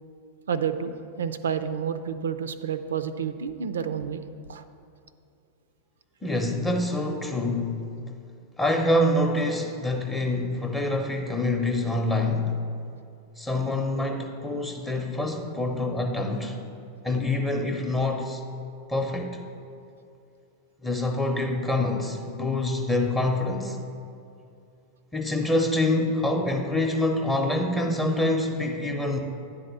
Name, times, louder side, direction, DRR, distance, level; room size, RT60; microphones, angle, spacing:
voice 1, 0.5-4.2 4.5-4.6, right 7 dB, 65° right, 12 dB, 0.4 m, -30 dB
voice 2, 6.2-7.8 8.6-12.5 13.4-16.6 17.0-18.4 18.9-19.4 20.8-23.8 25.1-29.2, left 1 dB, 10° left, 2 dB, 0.8 m, -26 dB
9.9 x 4.2 x 6.7 m, 2.6 s
figure-of-eight pair, 90°, 0 cm